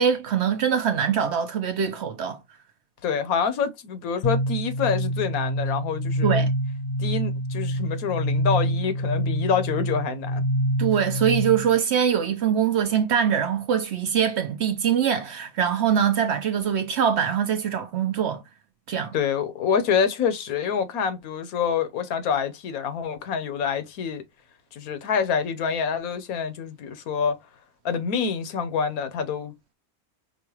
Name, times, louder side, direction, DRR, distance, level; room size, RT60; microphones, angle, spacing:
voice 1, 0.0-2.4 6.2-6.5 10.8-18.4 18.9-19.1, right 8 dB, 65° right, 0.7 m, -23 dB
voice 2, 3.0-6.4 7.0-10.4 10.9-11.0 19.1-24.2 24.7-27.4 27.8-29.7, left 6 dB, 85° left, 1.2 m, -26 dB
sound 1, 4.2-11.8, equal, 50° left, 0.8 m, -26 dB
5.4 x 2.2 x 2.9 m
omnidirectional pair, 1.5 m